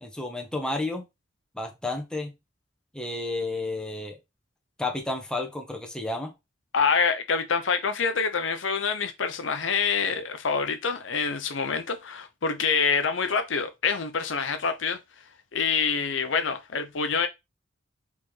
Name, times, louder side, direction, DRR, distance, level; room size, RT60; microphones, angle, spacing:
voice 1, 0.0-1.0 1.5-2.3 2.9-4.2 4.8-6.3, left 2 dB, 5° left, 0.9 m, -31 dB
voice 2, 6.7-15.0 15.5-17.3, left 5 dB, 75° left, 0.7 m, -26 dB
4.3 x 3.6 x 3.3 m
head